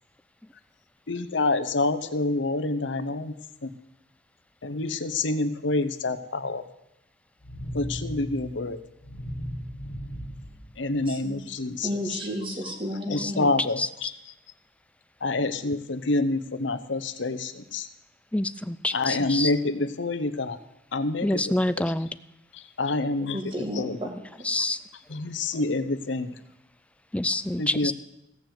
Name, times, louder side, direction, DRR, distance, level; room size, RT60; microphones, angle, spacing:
voice 1, 1.1-3.3 3.6-3.7 4.6-6.6 7.7-8.8 10.8-12.2 13.1-14.1 15.2-17.9 18.9-20.6 20.9-21.8 22.5-23.4 23.8-24.0 25.1-26.4 27.6-27.9, left 2 dB, 75° left, 12 dB, 0.9 m, -27 dB
sound 1, 7.4-11.4, equal, 50° left, 1.3 m, -37 dB
voice 2, 11.1-11.4 11.8-13.4 23.2-24.5, equal, 30° right, 3 dB, 1.9 m, -33 dB
voice 3, 13.1-13.9 18.3-19.5 21.2-22.1 24.5-24.8 27.1-27.9, left 1 dB, 5° left, 13 dB, 0.4 m, -27 dB
16.0 x 7.0 x 7.8 m, 0.85 s
head